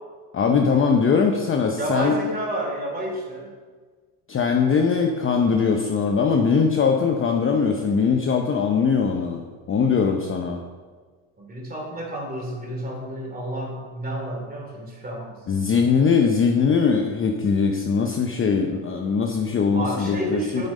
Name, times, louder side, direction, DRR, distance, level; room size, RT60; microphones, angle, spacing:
voice 1, 0.3-2.2 4.3-10.6 15.5-20.7, left 5 dB, 25° left, 3 dB, 0.8 m, -21 dB
voice 2, 1.8-3.5 11.4-15.4 19.7-20.7, right 1 dB, 20° right, -1 dB, 3.0 m, -30 dB
8.8 x 6.1 x 5.4 m, 1.5 s
supercardioid pair, 105°, 46 cm